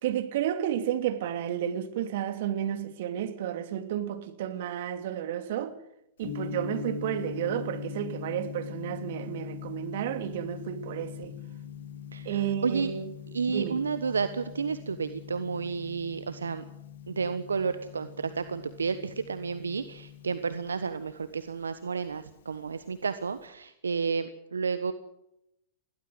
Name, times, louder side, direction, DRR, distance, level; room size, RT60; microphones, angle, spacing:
voice 1, 0.0-5.8 6.2-11.3 12.2-13.1 13.5-13.8, right 10 dB, 60° right, 2.7 m, -32 dB
Gong, 6.2-23.5, left 6 dB, 65° left, 5.0 m, -42 dB
voice 2, 12.1-12.9 13.3-16.6 17.1-24.9, right 5 dB, 85° right, 1.2 m, -31 dB
22.0 x 16.0 x 7.9 m
hypercardioid pair, 105°, 0 cm